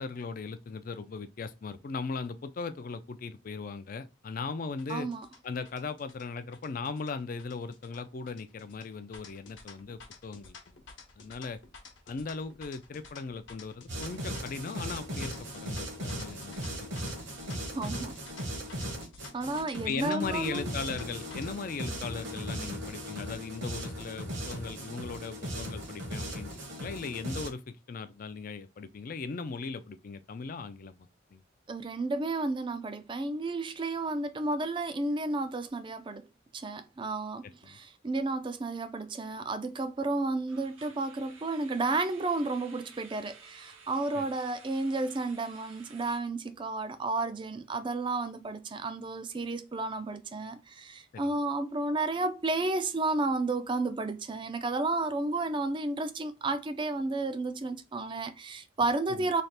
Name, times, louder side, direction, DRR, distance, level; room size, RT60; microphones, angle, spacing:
voice 1, 0.0-5.1 5.4-10.6 11.2-11.6 12.1-17.1 17.5-17.7 19.8-26.5 26.8-31.0 31.3-31.4 37.4-37.8 44.1-44.2 51.1-51.3 59.1-59.3, left 4 dB, 45° left, 0.4 m, -38 dB
sound 1, 4.8-21.5, left 4 dB, 65° left, 0.8 m, -51 dB
voice 2, 4.9-5.3 17.7-18.2 19.3-20.7 31.7-36.2 36.5-59.4, right 3 dB, 25° right, 0.4 m, -32 dB
sound 2, 13.9-27.5, equal, 65° right, 1.2 m, -38 dB
sound 3, 40.5-46.2, right 5 dB, 85° right, 1.0 m, -54 dB
3.3 x 2.4 x 4.2 m
head